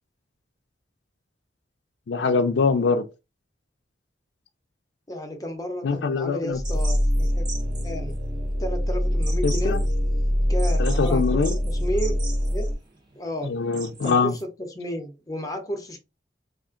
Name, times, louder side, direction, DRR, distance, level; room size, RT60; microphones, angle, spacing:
voice 1, 2.1-3.1 5.8-6.6 9.4-9.8 10.8-11.5 13.4-14.3, left 4 dB, 85° left, 0.4 m, -23 dB
voice 2, 5.1-7.5 7.8-8.2 8.6-9.8 10.5-12.2 12.5-12.7 13.2-13.5 14.0-16.0, equal, 20° left, 0.7 m, -32 dB
sound 1, 6.5-12.7, equal, 70° right, 1.2 m, -24 dB
sound 2, 6.6-14.4, right 3 dB, 25° right, 0.9 m, -42 dB
3.5 x 2.5 x 3.7 m
head